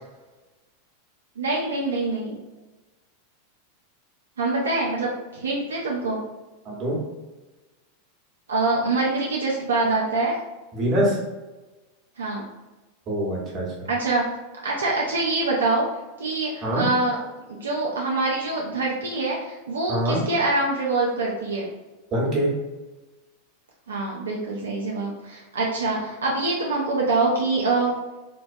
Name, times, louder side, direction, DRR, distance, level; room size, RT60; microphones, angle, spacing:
voice 1, 1.4-2.4 4.4-6.2 8.5-10.4 12.2-12.4 13.9-14.2 14.6-15.9 16.2-17.2 17.5-21.6 23.9-28.0, right 3 dB, 85° right, -3 dB, 0.4 m, -25 dB
voice 2, 6.6-7.0 10.7-11.2 13.1-13.9 16.6-16.8 19.9-20.2 22.1-22.5, right 1 dB, 40° right, -3 dB, 1.1 m, -24 dB
2.9 x 2.1 x 2.6 m, 1.1 s
hypercardioid pair, 95°, 0 cm